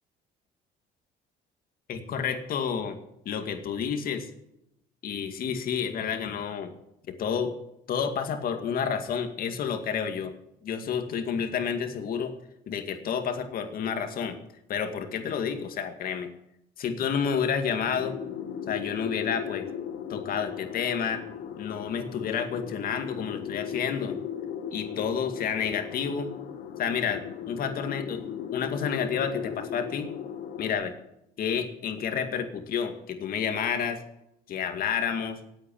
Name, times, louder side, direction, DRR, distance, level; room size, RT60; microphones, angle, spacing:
voice 1, 1.9-3.0 3.3-4.3 5.0-6.7 7.1-7.5 7.9-10.3 10.6-12.3 12.7-14.4 14.7-16.3 16.8-18.2 18.7-19.7 20.1-21.2 21.6-24.2 24.7-26.3 26.8-28.2 28.5-30.1 30.6-30.9 31.4-34.0 34.5-35.4, left 7 dB, 60° left, 6 dB, 2.3 m, -30 dB
sound 1, 17.8-30.7, left 8 dB, 85° left, 2.0 m, -37 dB
17.5 x 8.7 x 7.2 m, 0.83 s
cardioid pair, 110°, 17 cm